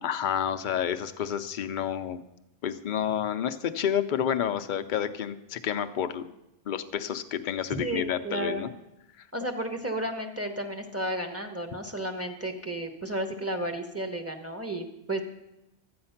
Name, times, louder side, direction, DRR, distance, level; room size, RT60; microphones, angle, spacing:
voice 1, 0.0-2.2 2.6-6.3 6.7-8.7, left 9 dB, 50° left, 9 dB, 0.7 m, -29 dB
voice 2, 7.8-8.7 9.3-15.2, right 1 dB, 15° right, 4 dB, 1.0 m, -33 dB
12.0 x 8.7 x 5.7 m, 0.93 s
omnidirectional pair, 1.2 m